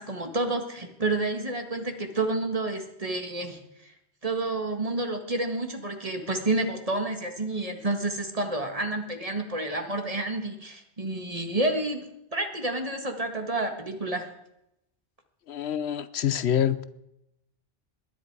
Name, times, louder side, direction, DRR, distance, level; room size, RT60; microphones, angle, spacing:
voice 1, 0.0-3.9 4.2-14.3, right 2 dB, 35° right, 5 dB, 1.8 m, -29 dB
voice 2, 15.5-16.8, left 9 dB, 75° left, 14 dB, 1.0 m, -26 dB
20.5 x 10.5 x 4.8 m, 0.82 s
omnidirectional pair, 1.1 m